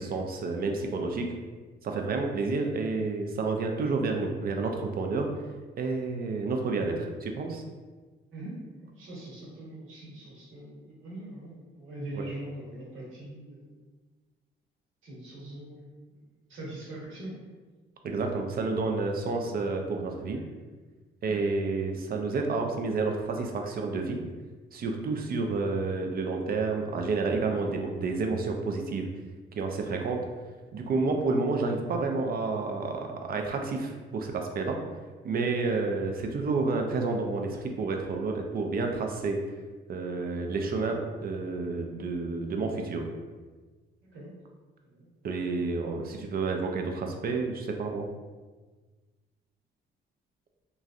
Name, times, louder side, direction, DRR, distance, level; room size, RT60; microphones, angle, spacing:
voice 1, 0.0-1.3 1.8-5.3 5.8-7.6 12.1-12.2 18.0-20.4 21.2-24.2 24.7-29.1 29.6-30.2 30.7-34.8 35.2-39.4 39.9-43.0 45.2-48.1, right 3 dB, 50° right, 3 dB, 0.5 m, -30 dB
voice 2, 8.3-13.7 15.0-15.9 16.5-17.3 20.3-20.4 21.2-21.4 44.1-44.3 44.8-45.1, right 1 dB, 80° right, -5 dB, 1.2 m, -42 dB
3.0 x 2.5 x 2.4 m, 1.3 s
cardioid pair, 90°, 20 cm